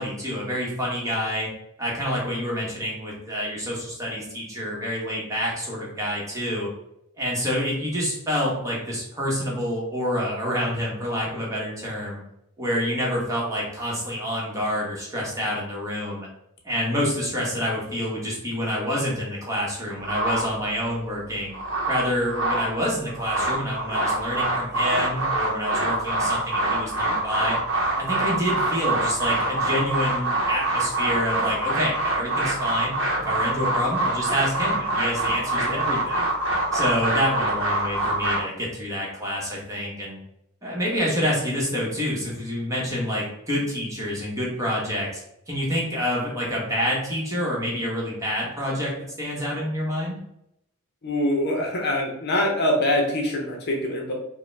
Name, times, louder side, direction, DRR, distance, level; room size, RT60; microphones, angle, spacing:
voice 1, 0.0-1.5 1.8-6.7 7.2-12.2 12.6-16.3 16.6-21.5 21.9-27.6 28.0-36.2 36.7-40.2 40.6-45.1 45.5-50.2, equal, 15° right, -4 dB, 1.1 m, -27 dB
sound 1, 20.0-20.9 21.4-22.7 23.1-38.4, right 2 dB, 60° right, 0.8 m, -25 dB
voice 2, 51.0-54.1, left 1 dB, 50° left, 1 dB, 0.7 m, -24 dB
4.9 x 2.2 x 3.3 m, 0.79 s
head